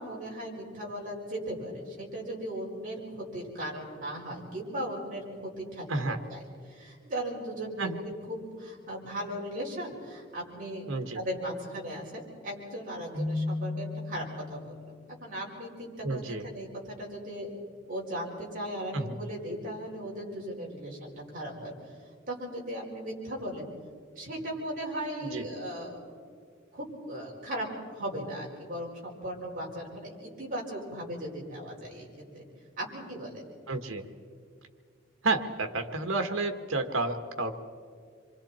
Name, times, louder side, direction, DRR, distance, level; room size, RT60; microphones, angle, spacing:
voice 1, 0.0-6.4 6.7-10.8 11.1-14.7 15.2-17.5 17.9-21.7 22.3-23.7 24.1-26.1 26.7-32.1 32.3-32.4 32.8-33.4, right 1 dB, 40° right, -4 dB, 5.0 m, -37 dB
voice 2, 10.9-11.2 16.0-16.5 18.9-19.2 25.3-25.5 33.7-34.1 35.2-37.5, right 3 dB, 90° right, 6 dB, 1.6 m, -30 dB
Keyboard (musical), 13.1-15.0, left 2 dB, 60° right, 5.1 m, -34 dB
27.0 x 24.5 x 4.4 m, 2.2 s
head